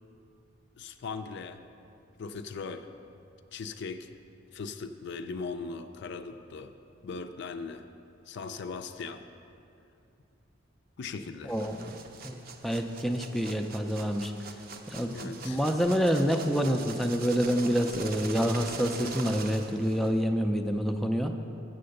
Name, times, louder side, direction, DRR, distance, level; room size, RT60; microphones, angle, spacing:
voice 1, 0.8-1.6 2.2-2.9 3.5-4.1 4.5-6.7 7.0-7.9 8.3-9.2 11.0-11.8 14.9-15.6, left 4 dB, 60° left, 9 dB, 0.4 m, -39 dB
voice 2, 11.5-12.0 12.2-14.3 14.9-21.3, equal, ahead, 3 dB, 0.4 m, -28 dB
sound 1, 11.5-20.2, right 4 dB, 50° right, 0.6 m, -42 dB
7.6 x 6.8 x 6.4 m, 2.7 s
head